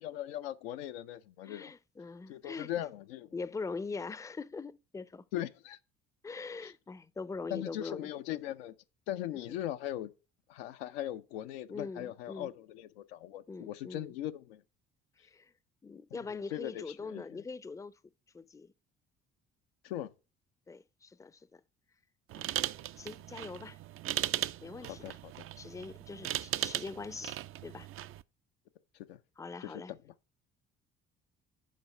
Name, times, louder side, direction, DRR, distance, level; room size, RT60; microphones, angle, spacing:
voice 1, 0.0-1.7 2.3-3.3 5.3-5.8 6.6-6.7 7.5-8.7 9.1-10.1 10.5-14.6 16.1-17.4 19.8-20.1 24.8-25.5 28.9-29.2 29.6-30.0, left 12 dB, 85° left, 0.5 m, -40 dB
voice 2, 1.4-2.7 3.3-5.3 6.2-8.1 9.3-9.6 11.7-12.5 13.5-14.1 15.2-15.5 15.8-17.9 18.3-18.7 20.7-21.6 22.3-23.8 24.6-25.2 25.6-27.9 29.4-29.9, left 4 dB, 10° left, 0.4 m, -43 dB
sound 1, 22.3-28.2, right 13 dB, 50° right, 0.4 m, -37 dB
7.4 x 4.8 x 5.3 m
hypercardioid pair, 60°, 30 cm